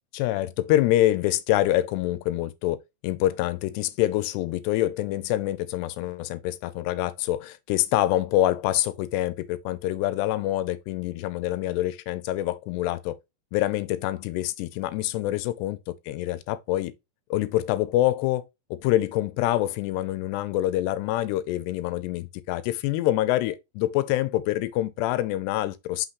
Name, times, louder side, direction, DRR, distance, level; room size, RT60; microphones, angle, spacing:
voice 1, 0.1-2.8 3.0-13.2 13.5-15.8 16.1-16.9 17.3-18.4 18.7-26.1, left 15 dB, 80° left, 2.5 m, -26 dB
6.1 x 5.7 x 3.0 m
omnidirectional pair, 5.2 m